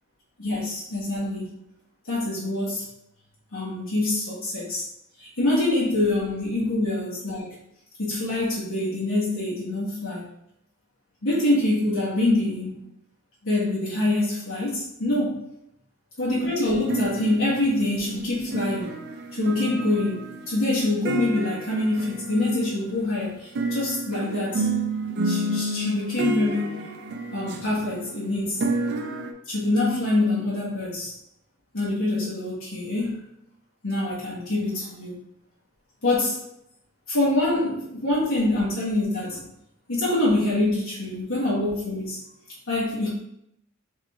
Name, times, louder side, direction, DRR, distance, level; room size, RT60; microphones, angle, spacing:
voice 1, 0.4-1.5 2.0-2.9 3.5-4.8 5.2-7.5 8.0-10.3 11.2-12.8 13.4-15.4 16.2-18.9 19.3-20.2 20.5-24.7 25.2-26.7 27.3-28.6 29.5-31.1 31.7-33.3 33.8-35.1 36.0-36.4 37.1-39.4 39.9-42.2 42.7-43.1, left 2 dB, 80° left, -8 dB, 1.3 m, -25 dB
sound 1, 16.7-23.0 23.6-29.3, right 2 dB, 55° right, 0.4 m, -30 dB
3.7 x 3.2 x 3.5 m, 0.78 s
head